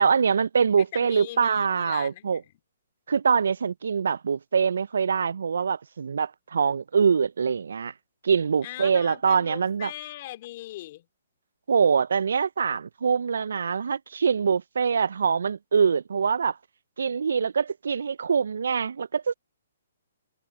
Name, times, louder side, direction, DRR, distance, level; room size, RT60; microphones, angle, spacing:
voice 1, 0.0-2.4 3.1-7.9 8.2-9.9 11.7-16.6 17.0-19.3, right 6 dB, 75° right, 0.3 m, -24 dB
voice 2, 0.9-2.5 8.6-11.1, left 15 dB, 45° left, 2.3 m, -40 dB
hypercardioid pair, 140°, 0 cm